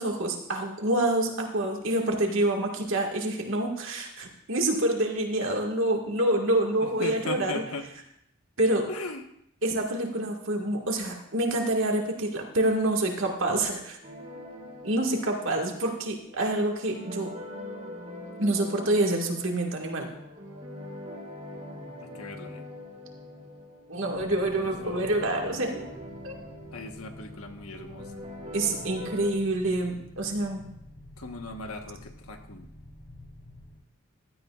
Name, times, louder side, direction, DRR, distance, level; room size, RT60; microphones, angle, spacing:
voice 1, 0.0-7.6 8.6-8.9 9.6-14.0 14.8-17.3 18.4-20.1 23.9-25.7 26.2-26.4 28.5-30.7, right 1 dB, 65° right, 1 dB, 1.9 m, -27 dB
voice 2, 6.8-7.8 8.9-9.2 22.0-22.6 24.8-25.1 26.7-28.3 31.2-32.7, left 3 dB, 90° left, 4 dB, 1.3 m, -38 dB
sound 1, 14.0-29.3, left 1 dB, 35° right, 2.9 m, -43 dB
sound 2, 24.1-33.8, left 1 dB, 50° left, 2.6 m, -48 dB
16.0 x 12.5 x 2.5 m, 0.75 s
head